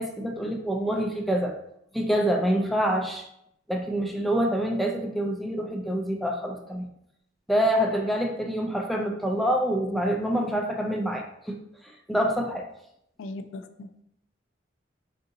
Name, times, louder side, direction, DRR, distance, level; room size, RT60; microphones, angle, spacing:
voice 1, 0.0-1.6 1.9-3.2 3.7-6.9 7.5-11.6 12.1-12.7, equal, ahead, 2 dB, 0.3 m, -26 dB
voice 2, 13.2-14.0, left 2 dB, 75° left, 9 dB, 0.3 m, -39 dB
3.7 x 2.7 x 2.6 m, 0.77 s
head